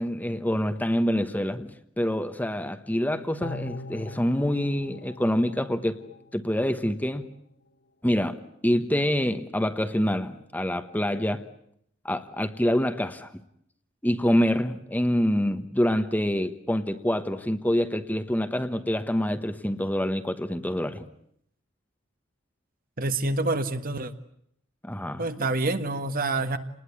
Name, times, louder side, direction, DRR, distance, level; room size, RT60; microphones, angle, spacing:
voice 1, 0.0-6.0 6.3-7.2 8.0-11.4 12.0-13.3 14.0-21.1 24.8-25.3, equal, 10° left, 9 dB, 1.2 m, -26 dB
sound 1, 3.4-6.7 7.1-7.2, left 3 dB, 55° left, 1.4 m, -42 dB
voice 2, 23.0-24.1 25.2-26.6, right 2 dB, 45° right, 9 dB, 1.6 m, -27 dB
29.0 x 20.0 x 9.8 m, 0.72 s
head